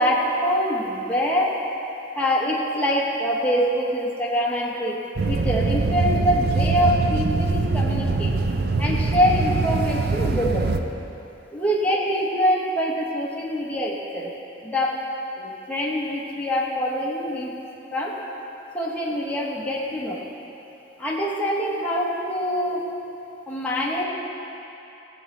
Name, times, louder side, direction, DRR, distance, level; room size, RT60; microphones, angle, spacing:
voice 1, 0.0-1.6 2.2-5.0 5.3-8.3 8.8-10.7 11.5-14.3 14.6-14.9 15.4-17.5 17.9-18.2 18.7-20.2 21.0-22.8 23.5-24.0, equal, 10° left, -5 dB, 1.0 m, -24 dB
sound 1, 5.2-10.8, right 3 dB, 55° right, 0.5 m, -23 dB
14.0 x 8.1 x 3.3 m, 3.0 s
head